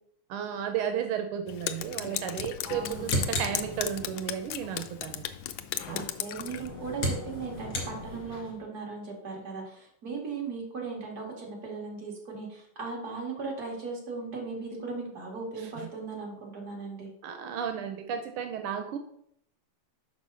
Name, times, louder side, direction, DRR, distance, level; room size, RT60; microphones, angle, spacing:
voice 1, 0.3-5.2 5.9-6.0 15.6-15.9 17.2-19.0, right 8 dB, 85° right, 6 dB, 1.6 m, -33 dB
Drip, 1.5-6.7, left 11 dB, 75° left, 1.2 m, -36 dB
sound 1, 2.6-4.3 6.3-8.6, left 1 dB, 55° left, 2.5 m, -34 dB
voice 2, 2.6-3.0 5.9-17.1, right 4 dB, 45° right, -1 dB, 2.6 m, -37 dB
6.1 x 5.5 x 5.6 m, 0.71 s
omnidirectional pair, 2.4 m